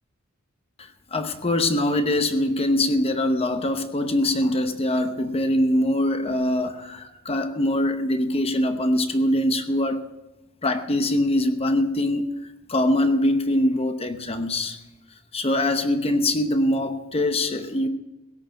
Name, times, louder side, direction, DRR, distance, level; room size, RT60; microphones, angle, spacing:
voice 1, 0.8-10.1 10.6-12.3 12.7-14.8 15.3-17.9, left 1 dB, 30° left, 0.9 m, -23 dB
17.0 x 6.7 x 8.9 m
head